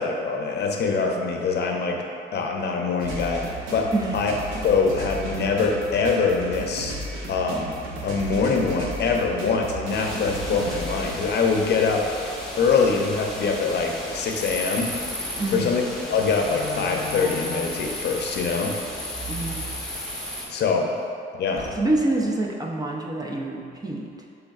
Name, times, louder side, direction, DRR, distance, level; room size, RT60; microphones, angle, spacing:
voice 1, 0.0-2.0 2.3-3.4 3.7-3.9 4.1-4.3 4.6-6.9 7.3-7.7 8.0-12.0 12.6-14.9 15.5-15.8 16.1-18.7 20.5-20.9 21.4-21.6, left 4 dB, 60° left, 1 dB, 0.6 m, -23 dB
sound 1, 3.0-11.2, right 1 dB, 85° right, 0.7 m, -34 dB
sound 2, 9.9-20.5, left 1 dB, 5° left, 0.9 m, -34 dB
Slam, 15.4-15.6 16.4-18.0 19.0-20.4 20.8-20.9 21.5-22.2, left 2 dB, 30° left, 0.8 m, -36 dB
voice 2, 15.4-15.7 19.3-19.6 21.8-24.1, right 2 dB, 20° right, -1 dB, 0.5 m, -26 dB
6.1 x 3.4 x 2.4 m, 2.4 s
cardioid pair, 90°, 20 cm